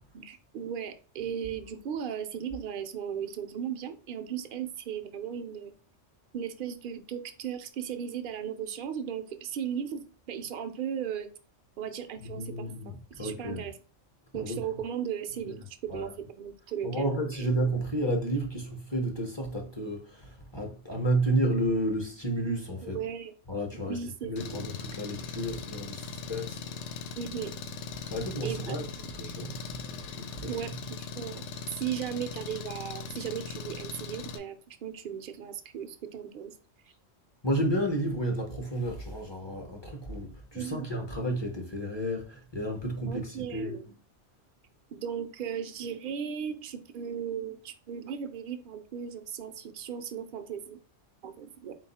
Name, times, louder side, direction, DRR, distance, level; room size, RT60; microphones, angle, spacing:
voice 1, 0.1-5.8 6.3-11.3 11.8-13.7 14.3-17.5 22.9-23.3 23.7-24.7 27.2-27.5 28.4-29.1 30.5-36.6 40.5-40.9 43.1-43.9 44.9-50.8 51.2-51.8, right 8 dB, 60° right, 0.6 m, -37 dB
voice 2, 12.2-13.6 14.3-14.6 15.5-15.6 15.9-16.1 16.8-23.0 23.5-26.6 28.1-28.9 29.1-29.8 30.1-30.6 37.4-43.8, right 1 dB, 30° left, 0.6 m, -31 dB
Engine, 24.4-34.4, left 5 dB, 75° left, 0.9 m, -40 dB
4.1 x 2.3 x 4.1 m
omnidirectional pair, 1.2 m